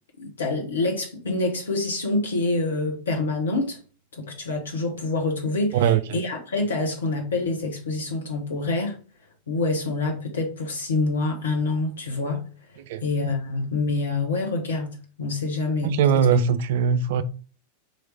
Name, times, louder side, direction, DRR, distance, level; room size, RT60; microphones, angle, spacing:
voice 1, 0.2-3.8 4.1-9.0 9.5-12.4 13.0-16.2, left 3 dB, 65° left, 1.2 m, -26 dB
voice 2, 15.8-17.2, right 7 dB, 55° right, 0.5 m, -20 dB
4.7 x 3.1 x 3.3 m
figure-of-eight pair, 90°, 0 cm